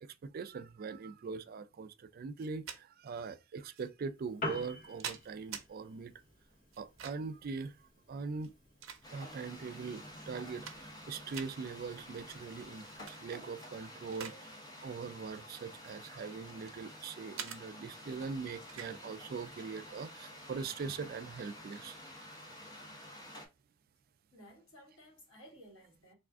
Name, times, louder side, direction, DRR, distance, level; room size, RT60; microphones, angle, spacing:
voice 1, 0.0-6.1 6.8-7.8 8.1-8.5 9.1-14.6 14.8-22.0, right 5 dB, 45° right, 0.3 m, -42 dB
sound 1, 2.4-2.8 3.7-3.9 4.6-5.7 6.7-7.4 8.3-9.4 10.0-10.1 10.4-11.0 11.3-11.5 12.9-13.2 13.6-14.4 14.7-14.9 15.7-16.8 17.4-17.6 18.7-18.9, right 8 dB, 85° right, 0.6 m, -45 dB
Piano, 4.2-13.1, left 2 dB, 40° left, 0.9 m, -49 dB
sound 2, 9.0-23.5, equal, 20° left, 1.0 m, -50 dB
voice 2, 24.3-26.1, equal, 85° left, 1.7 m, -56 dB
3.5 x 2.4 x 3.4 m
head